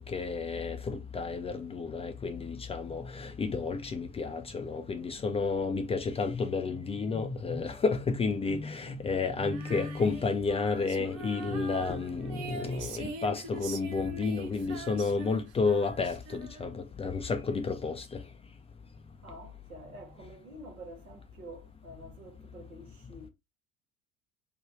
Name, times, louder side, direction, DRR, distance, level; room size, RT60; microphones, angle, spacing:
voice 1, 0.0-18.2, left 4 dB, 15° left, 0.3 m, -31 dB
voice 2, 8.8-9.2 19.2-23.3, right 1 dB, 90° right, 0.9 m, -48 dB
Female singing, 9.5-16.9, right 3 dB, 55° right, 0.8 m, -43 dB
3.3 x 2.2 x 3.0 m
figure-of-eight pair, 65°, 42 cm